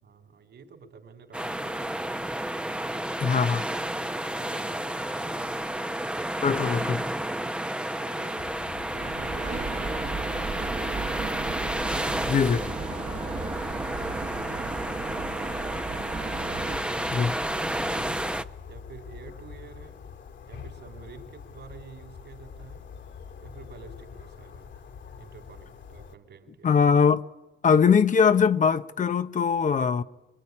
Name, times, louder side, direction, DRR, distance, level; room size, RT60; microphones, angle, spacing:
voice 1, 0.0-2.3 4.4-5.6 8.0-8.5 8.7-11.5 16.5-18.2 18.7-20.0 20.5-22.8 23.4-24.7 25.2-26.8, right 5 dB, 60° right, 4.2 m, -49 dB
sound 1, 1.3-18.4, right 1 dB, 5° right, 0.9 m, -31 dB
voice 2, 3.2-3.7 6.4-7.1 12.3-12.7 17.1-17.3 26.6-27.2 27.6-30.0, left 6 dB, 40° left, 0.8 m, -21 dB
sound 2, 8.4-26.2, left 6 dB, 65° left, 2.6 m, -44 dB
sound 3, 8.9-16.8, right 5 dB, 40° right, 1.6 m, -35 dB
25.5 x 21.5 x 9.8 m
cardioid pair, 90°, 20 cm